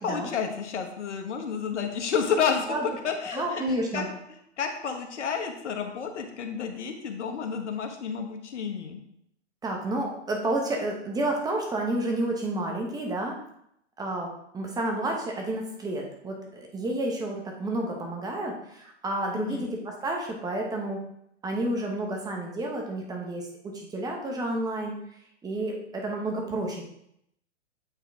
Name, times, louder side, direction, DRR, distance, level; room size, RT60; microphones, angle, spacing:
voice 1, 0.0-4.1 4.6-9.0 19.3-19.7, left 6 dB, 75° left, 5 dB, 1.3 m, -30 dB
voice 2, 3.3-4.1 9.6-13.4 14.0-21.0 21.4-24.9 25.4-26.8, right 1 dB, 10° right, 1 dB, 1.1 m, -30 dB
8.6 x 3.6 x 3.5 m, 0.74 s
hypercardioid pair, 135°, 36 cm